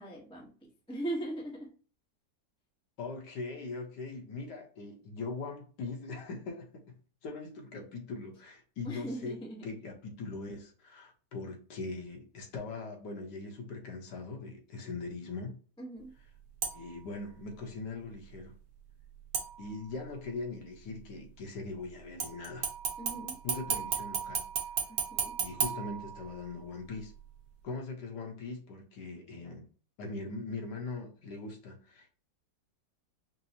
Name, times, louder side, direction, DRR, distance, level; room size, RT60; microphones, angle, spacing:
voice 1, 0.0-1.7 8.8-9.7 15.8-16.1 23.0-23.4 24.9-25.4, right 1 dB, 5° left, 0.4 m, -40 dB
voice 2, 3.0-15.6 16.7-18.5 19.6-22.7 23.1-24.4 25.4-27.1 27.6-29.7 30.0-32.1, left 3 dB, 70° left, 1.4 m, -41 dB
sound 1, 16.6-17.0 19.3-20.0 22.2-26.6 27.0-27.1, right 7 dB, 65° right, 1.2 m, -35 dB
5.4 x 2.0 x 2.7 m
omnidirectional pair, 2.0 m